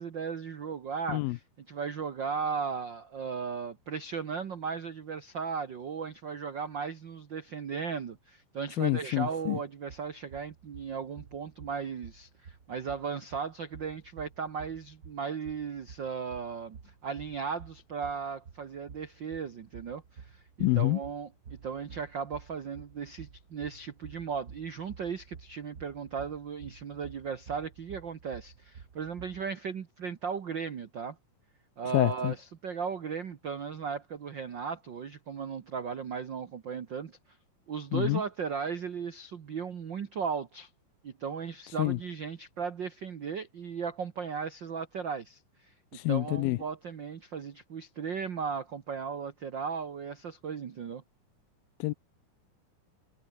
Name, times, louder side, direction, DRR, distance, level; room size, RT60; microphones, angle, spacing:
voice 1, 0.0-1.4 1.7-20.4 20.8-31.2 31.8-37.2 37.7-40.7 41.0-45.7 46.1-51.0, right 6 dB, 80° right, 1.0 m, -36 dB
voice 2, 8.8-9.6 20.6-21.0 31.9-32.3 37.9-38.2 41.8-42.0 45.9-46.6 51.8-51.9, left 19 dB, 85° left, 2.4 m, -27 dB
sound 1, 9.9-29.5, right 6 dB, 45° right, 1.3 m, -51 dB
omnidirectional pair, 4.2 m